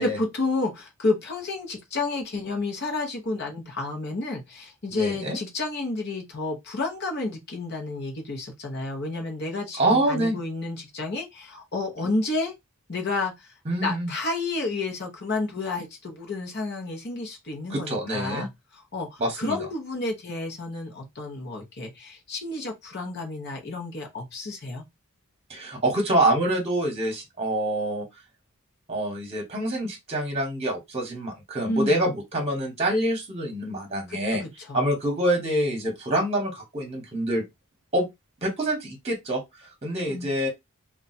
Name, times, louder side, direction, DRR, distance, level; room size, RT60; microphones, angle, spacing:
voice 1, 0.0-12.5 12.9-13.5 13.8-24.9 31.7-32.1 34.1-34.9 40.1-40.4, left 3 dB, 50° left, 0.8 m, -31 dB
voice 2, 4.9-5.4 9.8-10.4 13.7-14.1 17.7-18.5 19.2-19.6 25.5-28.1 28.9-34.4 34.7-37.4 37.9-38.1 38.4-39.4 39.8-40.5, right 1 dB, 25° right, 1.1 m, -26 dB
2.3 x 2.3 x 3.9 m
head